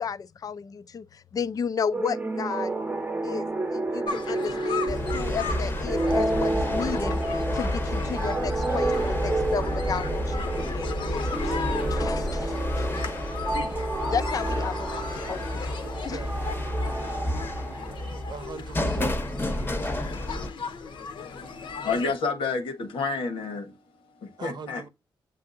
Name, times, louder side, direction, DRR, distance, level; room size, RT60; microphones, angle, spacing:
voice 1, 0.0-2.7 3.2-11.6 11.9-13.2 13.7-13.8 14.1-15.7 16.0-16.2, left 6 dB, 45° left, 0.4 m, -33 dB
sound 1, 1.9-18.3, right 2 dB, 20° right, 0.7 m, -31 dB
sound 2, 4.1-22.1, left 5 dB, 70° left, 0.7 m, -37 dB
sound 3, 4.9-20.5, left 1 dB, 25° left, 0.8 m, -31 dB
voice 2, 15.5-16.3 18.3-19.3 24.4-24.9, right 5 dB, 55° right, 0.7 m, -41 dB
voice 3, 21.2-23.8 24.2-24.8, left 4 dB, 85° left, 1.1 m, -30 dB
7.4 x 2.6 x 2.5 m
cardioid pair, 70°, 9 cm